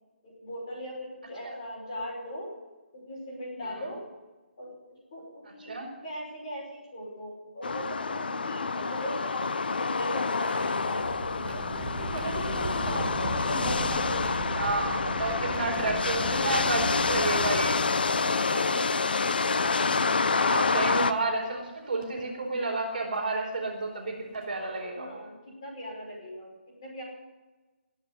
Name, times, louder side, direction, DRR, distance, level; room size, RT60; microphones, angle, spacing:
voice 1, 0.2-2.5 2.9-4.1 4.6-11.2 11.5-14.2 15.1-15.6 18.2-19.6 24.9-27.0, equal, 25° left, -3 dB, 5.5 m, -39 dB
sound 1, 7.6-21.1, left 4 dB, 55° left, 0.8 m, -28 dB
sound 2, 9.3-18.6 19.5-19.6 21.0-21.3 22.0-22.2 23.8-23.9 24.3-24.6, right 3 dB, 15° right, 1.0 m, -38 dB
voice 2, 14.5-17.8 20.2-25.2, right 3 dB, 45° right, 0 dB, 4.5 m, -31 dB
20.0 x 7.9 x 8.2 m, 1.2 s
hypercardioid pair, 180°, 6 cm